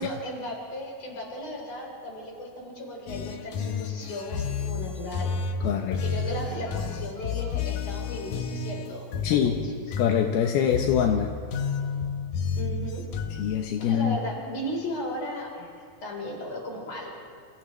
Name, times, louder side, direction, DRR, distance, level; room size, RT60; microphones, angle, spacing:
voice 1, 0.0-5.4 5.9-10.0 12.6-13.0 13.8-15.7 16.0-17.2, left 1 dB, 45° left, -1 dB, 5.3 m, -36 dB
sound 1, 3.1-13.6, left 5 dB, 65° left, 2.4 m, -31 dB
voice 2, 5.6-6.0 9.2-9.6 10.0-11.3 13.4-14.2, left 8 dB, 80° left, 2 dB, 2.9 m, -24 dB
30.0 x 28.0 x 3.3 m, 2.3 s
omnidirectional pair, 4.4 m